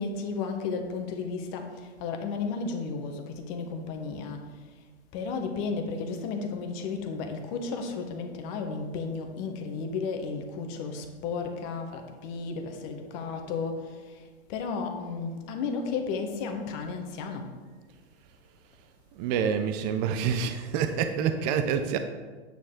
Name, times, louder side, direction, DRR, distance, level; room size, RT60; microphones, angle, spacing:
voice 1, 0.0-1.7 2.0-4.4 5.1-14.0 14.5-17.4, left 4 dB, 40° left, 4 dB, 1.3 m, -33 dB
voice 2, 19.1-22.0, right 7 dB, 40° right, 8 dB, 0.6 m, -27 dB
9.0 x 6.6 x 3.8 m, 1.4 s
hypercardioid pair, 125°, 33 cm